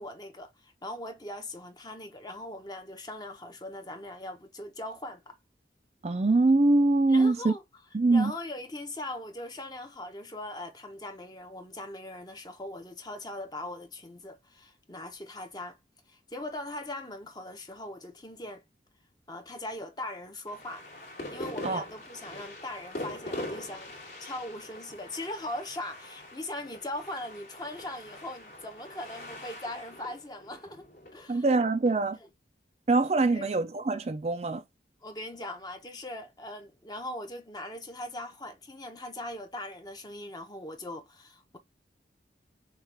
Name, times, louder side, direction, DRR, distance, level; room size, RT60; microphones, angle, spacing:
voice 1, 0.0-5.4 7.1-7.6 8.1-15.8 16.1-18.6 19.3-20.8 21.3-23.9 24.2-31.4 33.3-33.5 35.0-41.6, left 1 dB, 20° left, 0.9 m, -40 dB
voice 2, 6.0-7.5 7.9-8.3 21.6-21.8 31.3-32.2 32.9-34.6, right 3 dB, 35° right, 0.4 m, -23 dB
sound 1, 20.5-31.9, left 1 dB, 60° left, 2.5 m, -43 dB
6.5 x 2.4 x 3.4 m
head